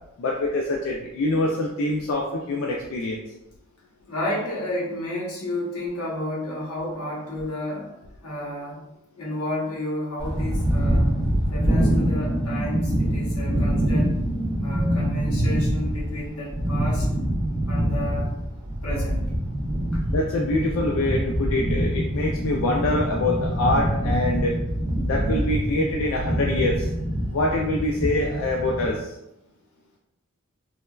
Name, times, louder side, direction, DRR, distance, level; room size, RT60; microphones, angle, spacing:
voice 1, 0.2-3.2 20.1-24.6 25.0-26.9 27.3-29.1, left 2 dB, 70° left, 0 dB, 0.3 m, -25 dB
voice 2, 4.1-7.9 8.2-8.8 9.2-11.2 11.5-14.1 14.6-17.1 17.7-18.4 18.8-19.2 19.9-20.0, left 1 dB, 90° left, -4 dB, 0.9 m, -31 dB
sound 1, 10.2-28.9, right 1 dB, 20° right, 0.3 m, -25 dB
3.1 x 2.1 x 2.2 m, 0.88 s
head